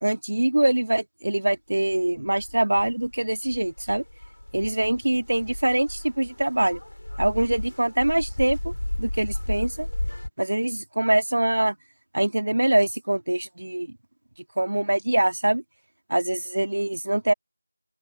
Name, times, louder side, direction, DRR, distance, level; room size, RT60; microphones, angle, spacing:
voice 1, 0.0-4.0 4.5-6.8 7.2-8.7 9.0-9.9 10.4-11.7 12.1-13.9 14.6-15.6 16.1-17.3, right 1 dB, 65° right, 2.3 m, -24 dB
sound 1, 1.9-10.3, left 1 dB, 90° left, 4.4 m, -34 dB
open air
figure-of-eight pair, 180°, 0 cm